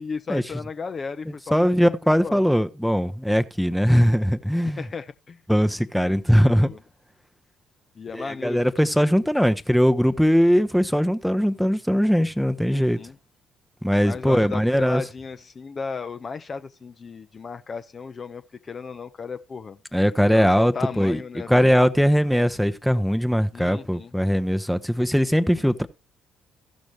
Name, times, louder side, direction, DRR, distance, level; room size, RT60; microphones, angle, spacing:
voice 1, 0.0-1.9 2.2-2.4 4.8-5.4 6.3-6.8 8.0-8.6 9.0-9.2 12.7-13.1 14.0-19.8 20.3-21.7 23.5-24.1, left 5 dB, 35° left, 0.5 m, -35 dB
voice 2, 1.5-4.9 5.5-6.7 8.1-13.0 13.8-15.0 19.9-21.2 21.5-25.9, equal, ahead, 0.7 m, -20 dB
15.5 x 6.2 x 3.2 m
figure-of-eight pair, 45°, 0 cm